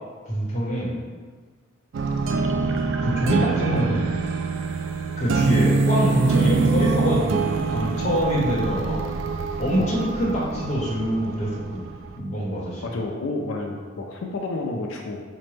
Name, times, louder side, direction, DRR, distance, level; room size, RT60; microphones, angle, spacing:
voice 1, 0.2-0.9 2.5-2.6 3.0-4.0 5.2-9.0 9.6-11.8 12.1-13.0, equal, 35° left, -5 dB, 0.9 m, -25 dB
sound 1, 1.9-12.1, right 4 dB, 65° right, 0.3 m, -24 dB
voice 2, 12.8-15.2, left 2 dB, 90° left, 1 dB, 0.4 m, -30 dB
4.9 x 2.1 x 3.2 m, 1.5 s
head